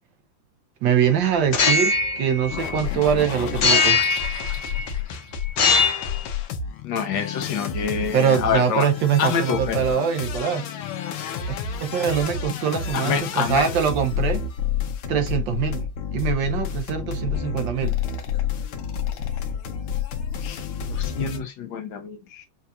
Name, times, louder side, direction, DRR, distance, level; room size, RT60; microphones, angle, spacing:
voice 1, 0.8-4.0 8.1-10.6 11.5-14.4 15.1-15.8 16.1-17.9, right 8 dB, 70° right, 1.3 m, -23 dB
sound 1, 1.4-3.1 3.6-4.9 5.5-6.2, left 4 dB, 55° left, 0.8 m, -21 dB
sound 2, 2.5-21.4, left 7 dB, 90° left, 1.6 m, -30 dB
voice 2, 6.8-8.9 9.2-9.8 12.9-13.6 20.4-22.5, left 7 dB, 70° left, 1.3 m, -27 dB
5.6 x 2.4 x 2.7 m
omnidirectional pair, 2.3 m